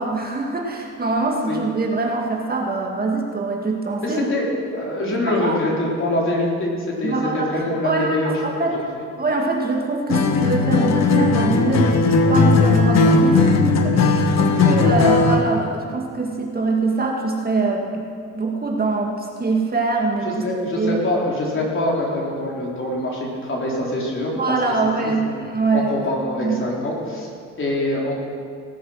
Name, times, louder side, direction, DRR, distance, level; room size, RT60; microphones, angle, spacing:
voice 1, 0.0-4.3 5.3-5.6 7.0-7.5 7.8-8.2 8.6-8.7 9.2-12.0 12.3-18.0 18.3-20.5 20.8-21.0 24.4-26.0 26.4-26.6, right 3 dB, 30° right, 0 dB, 1.9 m, -23 dB
voice 2, 4.0-9.1 14.5-14.7 20.2-24.3 25.0-25.3 25.7-27.3 27.6-28.1, left 1 dB, 40° left, -3 dB, 3.7 m, -24 dB
Acoustic guitar, 10.1-15.5, left 3 dB, 60° left, 1.3 m, -17 dB
18.5 x 7.9 x 6.5 m, 2.2 s
cardioid pair, 90°, 30 cm